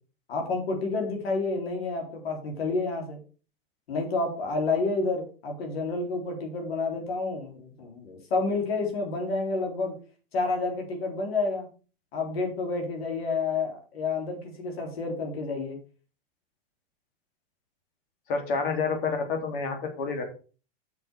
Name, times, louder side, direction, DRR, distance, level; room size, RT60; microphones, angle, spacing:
voice 1, 0.3-3.2 3.9-9.9 10.3-11.7 12.1-15.8, left 3 dB, 90° left, 2 dB, 4.1 m, -29 dB
voice 2, 18.3-20.2, left 4 dB, 60° left, 5 dB, 3.2 m, -28 dB
7.2 x 6.4 x 5.7 m, 0.36 s
supercardioid pair, 165°, 29 cm